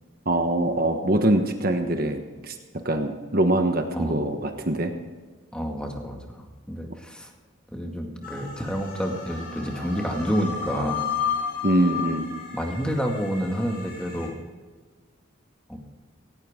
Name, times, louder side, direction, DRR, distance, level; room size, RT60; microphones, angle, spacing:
voice 1, 0.2-2.6 2.8-4.9 11.6-12.3, right 1 dB, 45° right, 5 dB, 1.2 m, -23 dB
voice 2, 3.9-4.2 5.5-7.3 7.7-11.1 12.5-14.3 15.7-15.8, equal, 5° left, 1 dB, 2.2 m, -29 dB
sound 1, 8.2-14.3, left 6 dB, 45° left, 5.9 m, -33 dB
17.5 x 17.0 x 3.8 m, 1.4 s
head